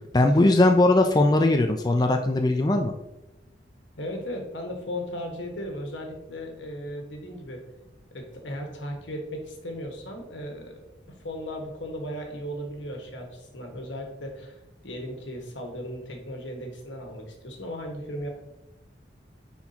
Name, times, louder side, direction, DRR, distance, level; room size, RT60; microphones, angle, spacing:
voice 1, 0.1-2.9, left 2 dB, 20° left, 4 dB, 0.4 m, -20 dB
voice 2, 4.0-7.6 8.1-10.8 11.2-18.3, equal, 85° left, 2 dB, 1.4 m, -36 dB
9.8 x 4.3 x 2.9 m, 0.94 s
head